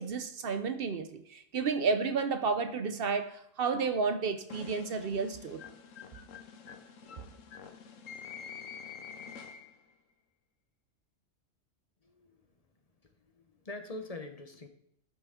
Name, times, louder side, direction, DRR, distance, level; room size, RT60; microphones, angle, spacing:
voice 1, 0.0-5.6, right 5 dB, 55° right, 0.8 m, -31 dB
sound 1, 4.5-9.9, left 6 dB, 85° left, 1.2 m, -47 dB
voice 2, 12.0-12.4 13.2-14.7, left 2 dB, 35° left, 0.9 m, -44 dB
11.0 x 6.3 x 3.6 m
omnidirectional pair, 1.3 m